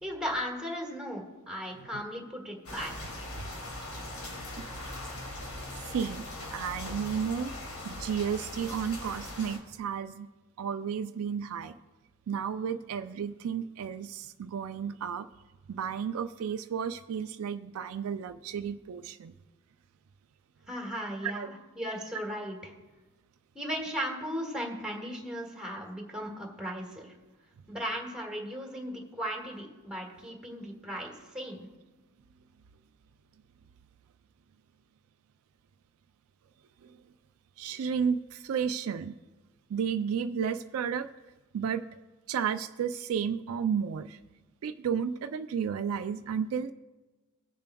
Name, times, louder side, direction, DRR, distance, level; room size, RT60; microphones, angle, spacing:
voice 1, 0.0-3.2 20.7-22.7 23.5-27.1 27.7-31.7, equal, 5° right, 0 dB, 1.7 m, -37 dB
sound 1, 2.6-9.6, left 1 dB, 85° left, 2.0 m, -40 dB
voice 2, 5.9-7.5 7.8-10.3 10.6-11.7 12.3-15.3 15.7-19.3 21.2-21.5 36.8-37.0 37.6-39.2 39.7-41.1 41.5-41.9 42.3-44.2 44.6-46.7, right 7 dB, 75° right, 9 dB, 0.4 m, -32 dB
19.5 x 6.9 x 2.3 m, 1.2 s
head